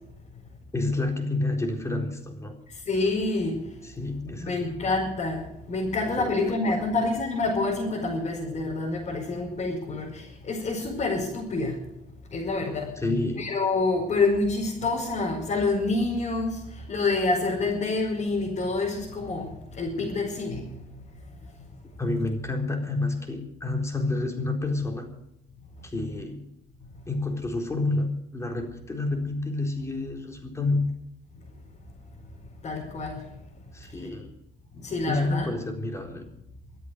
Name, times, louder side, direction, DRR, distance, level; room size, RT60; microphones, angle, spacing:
voice 1, 0.7-2.5 4.0-4.8 6.2-6.6 13.0-13.5 22.0-25.1 25.8-26.4 27.1-28.1 28.3-30.8 33.7-34.3 35.1-36.2, left 2 dB, 15° left, 3 dB, 4.0 m, -29 dB
voice 2, 2.9-3.6 4.2-11.8 12.3-13.0 13.4-16.6 16.9-20.7 32.6-33.2 34.8-35.5, left 3 dB, 45° left, -3 dB, 5.3 m, -27 dB
24.5 x 8.5 x 6.5 m, 0.80 s
cardioid pair, 110°, 17 cm